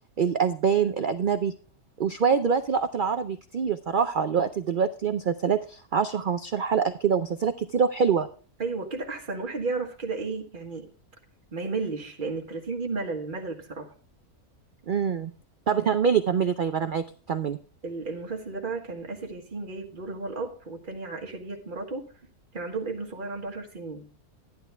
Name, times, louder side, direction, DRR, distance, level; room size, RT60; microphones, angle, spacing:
voice 1, 0.2-1.5 2.0-8.3 14.9-15.3 15.7-17.6, right 6 dB, 80° right, 0.4 m, -25 dB
voice 2, 8.6-10.9 11.5-13.9 17.8-22.1 22.5-24.1, right 3 dB, 35° right, 1.6 m, -33 dB
11.5 x 10.5 x 3.4 m
omnidirectional pair, 1.6 m